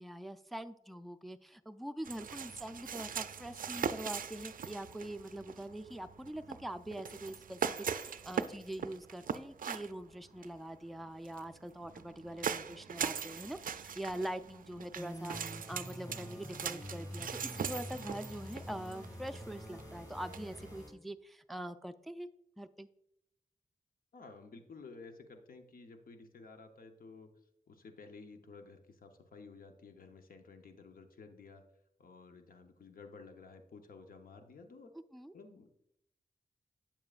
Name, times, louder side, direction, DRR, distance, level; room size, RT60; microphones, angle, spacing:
voice 1, 0.0-22.3 22.6-22.9 35.1-35.3, right 1 dB, ahead, 9 dB, 0.3 m, -44 dB
sound 1, 2.0-20.8, right 7 dB, 70° right, 0.4 m, -41 dB
sound 2, 15.0-20.9, equal, 25° left, 2.2 m, -47 dB
voice 2, 24.1-27.3 27.7-31.6 32.0-34.9 35.3-35.7, left 4 dB, 75° left, 5 dB, 0.8 m, -53 dB
8.6 x 7.3 x 2.4 m, 0.78 s
cardioid pair, 55°, 15 cm